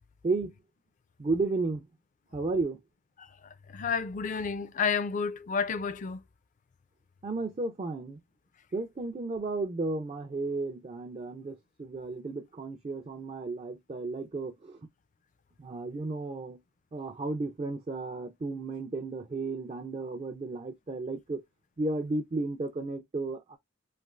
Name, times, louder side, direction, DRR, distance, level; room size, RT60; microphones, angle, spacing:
voice 1, 0.2-0.6 1.2-1.8 2.3-2.8 7.2-8.2 8.7-14.8 15.6-16.6 16.9-21.4 21.8-23.6, right 3 dB, 30° right, 0.4 m, -33 dB
voice 2, 3.7-6.2, left 5 dB, 40° left, 0.4 m, -30 dB
3.3 x 2.4 x 2.4 m
head